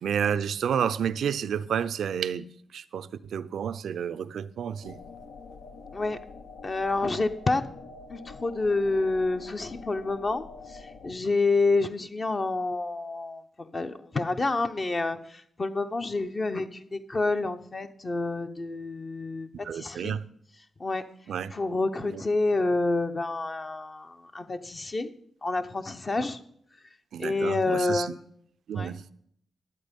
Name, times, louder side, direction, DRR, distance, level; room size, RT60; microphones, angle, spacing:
voice 1, 0.0-2.5 2.7-5.0 19.6-20.3 21.3-21.5 22.1-22.2 27.1-28.1 28.7-29.0, right 8 dB, 80° right, 0.4 m, -30 dB
sound 1, 4.8-11.1, left 4 dB, 90° left, 0.9 m, -46 dB
voice 2, 6.6-7.6 8.1-20.1 20.8-21.0 21.5-25.1 25.4-26.4 27.2-28.2 28.7-29.0, left 3 dB, 40° left, 0.8 m, -28 dB
12.0 x 8.2 x 5.2 m
cardioid pair, 60°, 0 cm